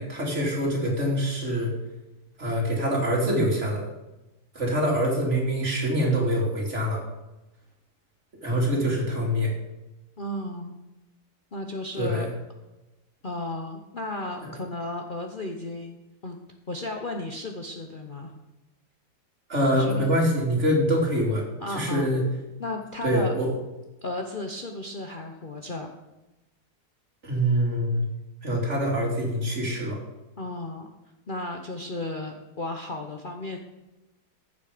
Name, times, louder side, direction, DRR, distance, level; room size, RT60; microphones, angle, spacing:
voice 1, 0.0-1.7 2.4-3.8 4.5-7.0 8.4-9.5 12.0-12.3 19.5-21.4 21.7-22.2 23.0-23.5 27.2-28.0 28.4-30.0, equal, 45° right, -2 dB, 3.1 m, -25 dB
voice 2, 10.2-10.8 11.5-12.3 13.2-16.0 16.2-16.4 16.7-18.3 19.7-20.1 21.6-22.1 22.6-23.3 24.0-25.9 30.4-30.9 31.3-33.6, left 2 dB, 40° left, 2 dB, 0.9 m, -34 dB
15.5 x 7.6 x 5.1 m, 1.0 s
omnidirectional pair, 1.7 m